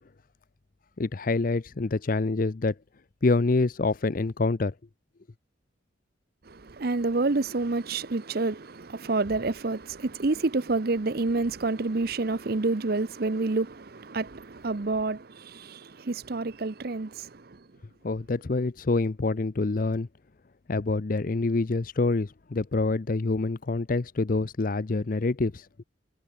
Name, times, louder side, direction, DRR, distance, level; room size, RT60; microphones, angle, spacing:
voice 1, 1.0-2.7 3.2-4.7 18.0-20.1 20.7-25.7, left 3 dB, 45° left, 0.6 m, -26 dB
voice 2, 6.4-17.7, right 3 dB, 50° right, 0.7 m, -28 dB
head